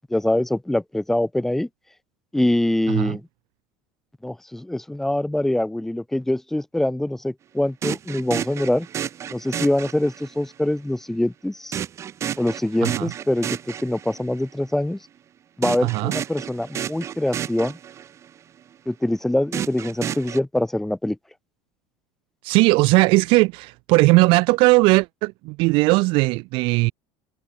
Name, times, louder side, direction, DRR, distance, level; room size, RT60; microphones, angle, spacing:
voice 1, 0.1-1.7 2.3-3.2 4.2-8.9 9.3-11.8 12.4-15.0 15.6-17.8 18.8-21.2, left 1 dB, 5° left, 1.5 m, -24 dB
sound 1, 7.8-10.5 11.7-14.3 15.6-18.3 19.5-20.4, right 9 dB, 25° right, 5.8 m, -31 dB
voice 2, 15.8-16.1 22.4-26.9, right 24 dB, 50° right, 3.1 m, -18 dB
cardioid pair, 170°, 11 cm